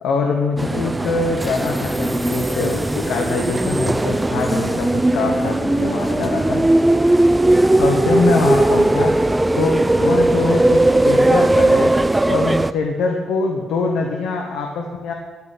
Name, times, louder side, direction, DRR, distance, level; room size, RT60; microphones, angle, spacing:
voice 1, 0.0-6.7 7.8-9.2 9.6-11.9 12.3-15.1, left 4 dB, 85° left, 2 dB, 1.5 m, -23 dB
sound 1, 0.6-12.7, right 1 dB, 10° right, 0.3 m, -18 dB
13.0 x 11.0 x 5.2 m, 1.4 s
cardioid pair, 160°, 0 cm